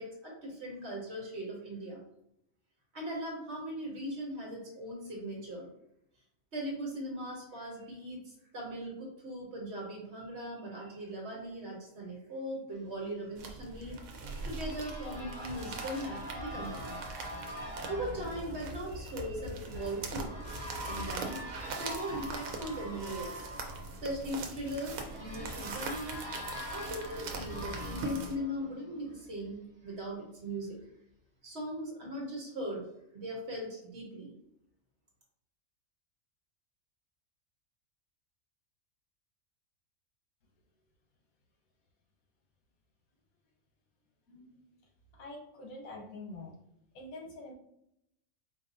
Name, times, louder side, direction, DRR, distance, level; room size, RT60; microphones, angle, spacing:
voice 1, 0.0-2.0 2.9-5.7 6.5-17.0 17.9-20.3 20.9-21.4 21.7-23.3 24.0-26.2 26.7-30.8 31.4-32.9 33.1-34.3, equal, 55° right, -2 dB, 1.4 m, -39 dB
sound 1, 13.4-28.4, right 3 dB, 80° right, 1.1 m, -42 dB
sound 2, 13.6-29.3, equal, 30° right, 1.1 m, -44 dB
voice 2, 44.3-44.7 45.2-46.6 46.9-47.5, left 2 dB, 90° left, 0 dB, 1.4 m, -46 dB
4.5 x 2.6 x 2.6 m, 0.78 s
omnidirectional pair, 1.4 m